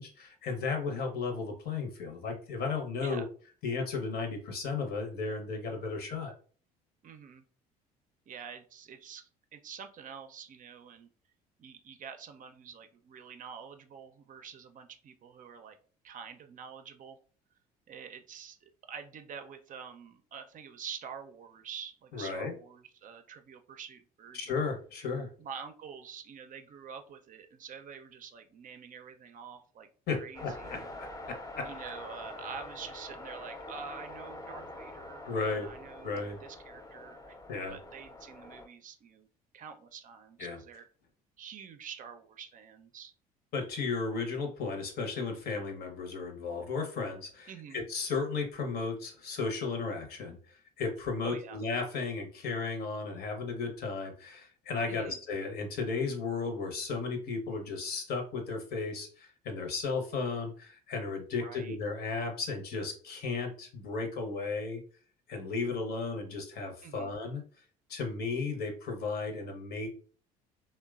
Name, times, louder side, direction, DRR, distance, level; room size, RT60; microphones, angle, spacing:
voice 1, 0.0-3.2 3.6-6.3 22.1-22.5 24.3-25.3 30.1-31.7 35.3-35.7 36.0-36.4 37.5-37.8 40.4-40.6 43.5-64.8 65.3-67.4 67.9-69.9, left 4 dB, 55° left, 4 dB, 0.8 m, -34 dB
voice 2, 7.0-7.4 8.3-11.1 11.6-15.8 16.0-17.2 17.9-24.6 25.1-30.9 31.6-39.3 39.5-40.9 41.4-43.1 47.5-47.8 51.2-51.6 54.9-55.2 61.4-61.8 66.8-67.1, right 7 dB, 45° right, 7 dB, 0.5 m, -47 dB
sound 1, 30.3-38.7, left 2 dB, 20° left, 0.6 m, -45 dB
2.9 x 2.2 x 2.3 m, 0.41 s
hypercardioid pair, 65°, 19 cm